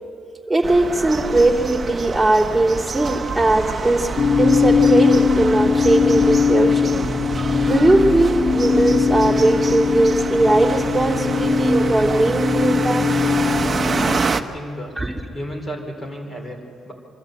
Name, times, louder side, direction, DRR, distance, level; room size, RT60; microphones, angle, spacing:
voice 1, 0.5-4.1 4.4-6.9 7.3-13.1 15.0-15.1, right 2 dB, 5° right, -2 dB, 3.2 m, -19 dB
sound 1, 0.6-14.4, right 5 dB, 35° right, 0.9 m, -27 dB
sound 2, 4.2-14.2, left 5 dB, 50° left, 1.1 m, -20 dB
voice 2, 14.3-14.9 15.3-16.9, equal, 30° left, 3 dB, 4.4 m, -33 dB
25.0 x 13.0 x 8.1 m, 2.4 s
cardioid pair, 90°, 0 cm